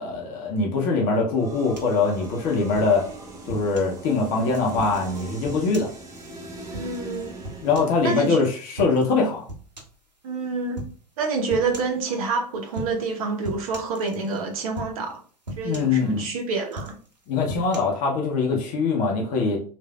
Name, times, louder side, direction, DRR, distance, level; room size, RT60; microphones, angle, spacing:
voice 1, 0.0-3.1 3.5-5.9 7.6-9.5 15.6-16.2 17.3-19.6, left 4 dB, 40° left, 0 dB, 0.7 m, -23 dB
sound 1, 1.3-8.3, right 2 dB, 15° right, 0.8 m, -40 dB
sound 2, 1.8-4.0 4.5-8.3 8.8-9.2 9.5-10.0 10.8-11.0 11.5-12.0 12.7-13.1 13.4-14.4 14.8-15.1 15.5-16.3 16.7-17.8, right 1 dB, 85° right, 0.7 m, -39 dB
voice 2, 6.7-7.3 8.0-8.4 10.2-10.8 11.2-15.2 15.6-16.9, right 4 dB, 55° right, 3 dB, 0.9 m, -27 dB
3.2 x 2.5 x 2.3 m, 0.42 s
figure-of-eight pair, 90°, 21 cm